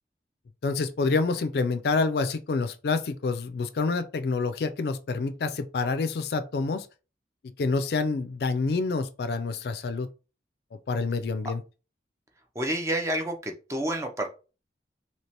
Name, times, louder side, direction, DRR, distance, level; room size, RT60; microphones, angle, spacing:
voice 1, 0.6-6.9 7.6-10.1 10.9-11.6, left 4 dB, 60° left, 0.3 m, -27 dB
voice 2, 12.5-14.3, right 1 dB, 15° right, 0.5 m, -29 dB
3.2 x 2.8 x 2.9 m
head